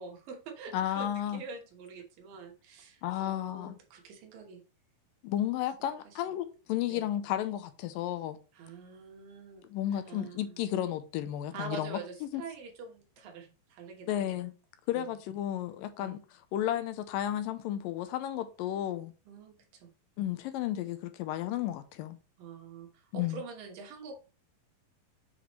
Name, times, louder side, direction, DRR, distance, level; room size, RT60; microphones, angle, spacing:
voice 1, 0.0-4.6 6.9-7.0 8.5-9.6 10.1-10.6 11.5-14.4 14.9-15.1 16.0-16.2 19.3-19.9 22.4-24.3, right 5 dB, 75° right, 2.9 m, -45 dB
voice 2, 0.7-1.4 3.0-3.8 5.2-8.4 9.7-12.4 14.1-14.5 14.9-19.1 20.2-22.2 23.1-23.4, left 12 dB, 85° left, 2.3 m, -33 dB
7.2 x 5.0 x 3.0 m
omnidirectional pair, 4.1 m